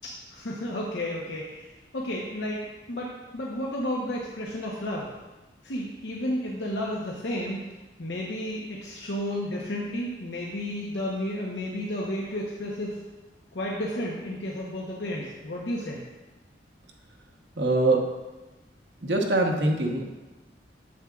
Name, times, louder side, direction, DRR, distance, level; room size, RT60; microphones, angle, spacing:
voice 1, 0.3-1.7 1.9-5.1 5.6-7.6 8.0-13.0 13.5-16.0, left 1 dB, 80° left, -3 dB, 0.9 m, -32 dB
voice 2, 17.6-18.0 19.0-20.0, right 2 dB, 70° right, 0 dB, 1.1 m, -23 dB
8.7 x 7.3 x 2.4 m, 1.1 s
head